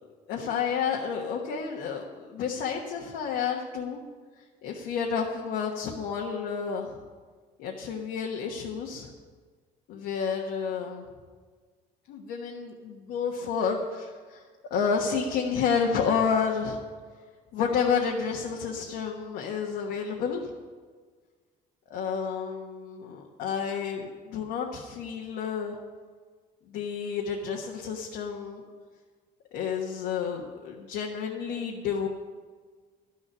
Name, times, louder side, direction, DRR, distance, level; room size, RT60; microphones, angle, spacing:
voice 1, 0.3-4.0 4.6-7.0 7.6-9.1 9.9-11.0 12.1-14.4 14.7-16.8 17.5-20.5 21.9-25.8 26.7-28.6 29.5-32.1, left 6 dB, 85° left, -1 dB, 1.3 m, -30 dB
12.0 x 7.2 x 9.0 m, 1.5 s
cardioid pair, 110°, 17 cm